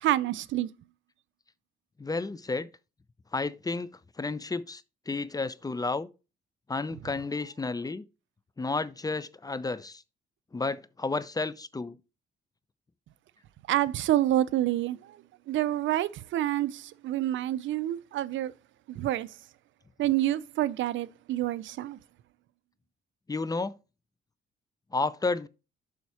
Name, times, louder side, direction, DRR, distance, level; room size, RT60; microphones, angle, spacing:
voice 1, 0.0-0.7 13.7-15.0 15.5-18.5 18.9-19.3 20.0-22.0, right 13 dB, 75° right, 0.5 m, -27 dB
voice 2, 2.0-2.7 3.3-3.9 4.2-6.1 6.7-8.1 8.6-10.0 10.5-12.0 23.3-23.8 24.9-25.5, left 3 dB, 20° left, 0.6 m, -31 dB
7.2 x 5.6 x 4.8 m
cardioid pair, 90°, 20 cm